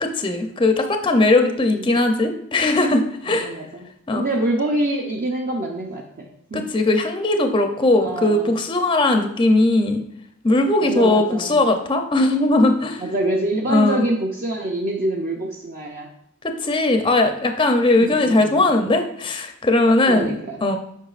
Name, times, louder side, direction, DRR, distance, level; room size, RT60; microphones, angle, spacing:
voice 1, 0.0-3.5 4.1-4.2 6.5-10.0 10.4-13.0 13.7-14.0 16.4-20.3 20.6-20.8, left 2 dB, 25° left, 6 dB, 0.5 m, -19 dB
voice 2, 1.3-2.0 3.3-6.7 8.0-8.6 10.8-11.6 13.0-16.1 18.0-18.6 20.1-20.6, right 1 dB, 40° right, -1 dB, 0.6 m, -26 dB
8.1 x 5.5 x 2.4 m, 0.76 s
head